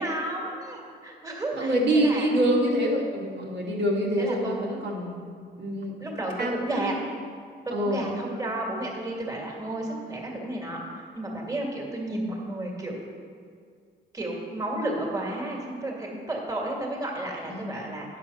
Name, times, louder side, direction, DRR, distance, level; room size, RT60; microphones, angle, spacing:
voice 1, 0.0-2.3 4.2-4.8 6.0-6.9 7.7-10.8 11.1-12.9 14.1-18.1, right 1 dB, 15° right, -1 dB, 2.3 m, -32 dB
voice 2, 1.5-5.3 5.6-6.0 6.4-6.9 7.7-8.1 17.4-17.8, right 1 dB, 60° right, -3 dB, 2.0 m, -26 dB
9.5 x 6.7 x 5.7 m, 2.1 s
cardioid pair, 90°, 20 cm